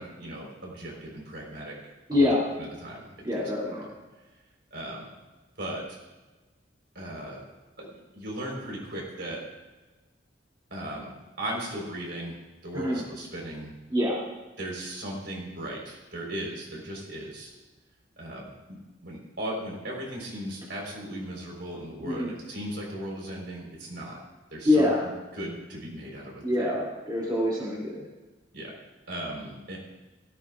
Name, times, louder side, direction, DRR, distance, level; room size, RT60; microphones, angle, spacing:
voice 1, 0.0-1.8 2.2-2.3 2.6-3.1 3.3-3.8 4.7-5.1 5.6-6.0 6.9-7.4 7.8-9.4 10.7-11.1 11.4-12.3 12.6-13.7 14.6-17.5 18.2-24.2 24.5-24.8 25.3-26.7 28.5-28.7 29.1-29.8, right 1 dB, 65° right, -2 dB, 4.3 m, -37 dB
voice 2, 2.1-2.4 3.2-3.8 12.7-13.0 13.9-14.2 22.0-22.3 24.6-25.0 26.4-28.0, left 1 dB, 25° right, -6 dB, 2.8 m, -25 dB
17.0 x 14.5 x 2.5 m, 1.2 s
head